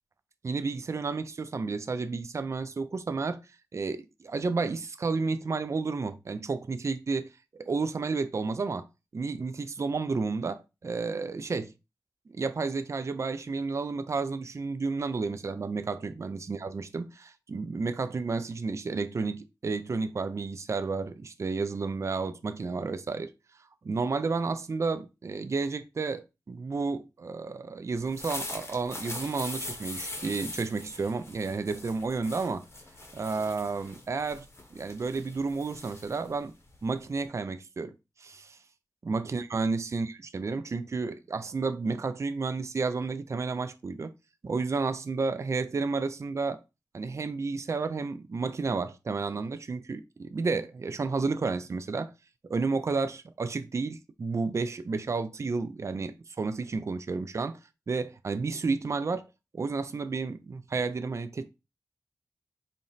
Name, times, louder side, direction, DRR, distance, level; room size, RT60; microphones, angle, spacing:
voice 1, 0.4-3.4 3.7-8.8 9.1-11.7 12.3-23.3 23.8-32.7 33.1-36.5 36.8-38.6 39.0-44.1 44.4-46.6 46.9-52.1 52.5-57.6 57.9-59.3 59.5-61.5, right 4 dB, 45° right, 0.4 m, -31 dB
sound 1, 27.9-37.2, left 2 dB, 40° left, 0.9 m, -42 dB
4.1 x 2.0 x 3.9 m
wide cardioid pair, 70°, 7 cm